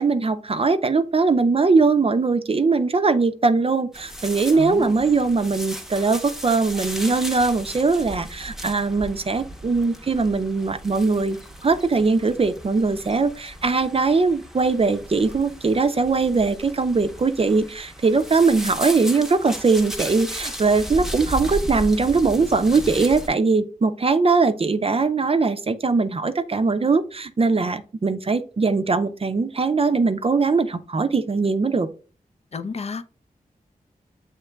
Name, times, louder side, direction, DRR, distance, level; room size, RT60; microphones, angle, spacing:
voice 1, 0.0-11.4 11.6-31.9, right 4 dB, 40° right, 0.5 m, -21 dB
sound 1, 3.9-23.3, equal, 5° right, 0.7 m, -35 dB
voice 2, 4.5-4.9 32.5-33.0, left 4 dB, 45° left, 0.4 m, -30 dB
7.0 x 2.9 x 2.2 m
cardioid pair, 45°, 15 cm